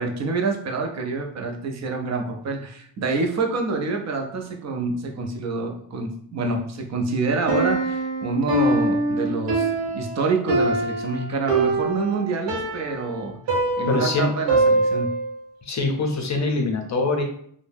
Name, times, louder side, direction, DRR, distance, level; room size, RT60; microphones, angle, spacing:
voice 1, 0.0-15.1, right 3 dB, 40° right, 3 dB, 0.5 m, -27 dB
Piano, 7.5-15.3, right 2 dB, 55° right, 1.0 m, -23 dB
voice 2, 13.9-14.3 15.6-17.2, left 3 dB, 40° left, 3 dB, 0.6 m, -23 dB
2.7 x 2.1 x 3.3 m, 0.64 s
wide cardioid pair, 150°, 44 cm